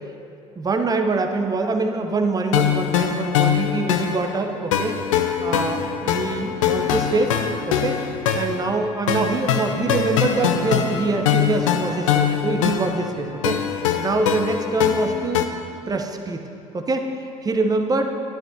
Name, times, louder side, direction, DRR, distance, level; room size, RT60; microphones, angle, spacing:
voice 1, 0.6-5.0 5.4-7.3 7.7-8.0 8.3-15.4 15.9-16.4 16.7-18.1, right 3 dB, 20° right, 4 dB, 0.8 m, -24 dB
sound 1, 2.5-15.5, left 8 dB, 75° left, 0.5 m, -23 dB
sound 2, 5.5-13.5, right 2 dB, 65° right, 1.8 m, -40 dB
12.5 x 10.5 x 2.8 m, 2.7 s
figure-of-eight pair, 60°, 17 cm